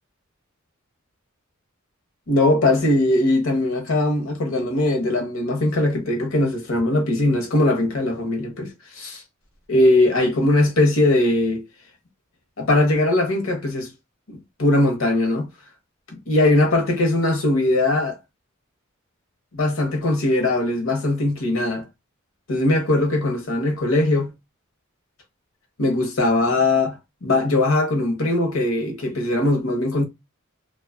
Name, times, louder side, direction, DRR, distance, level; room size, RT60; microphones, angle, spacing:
voice 1, 2.3-8.7 9.0-9.2 9.7-11.6 12.6-13.9 14.3-15.5 16.1-18.2 19.5-21.8 22.5-24.3 25.8-30.0, left 2 dB, 70° left, 0.8 m, -20 dB
2.5 x 2.2 x 2.4 m
head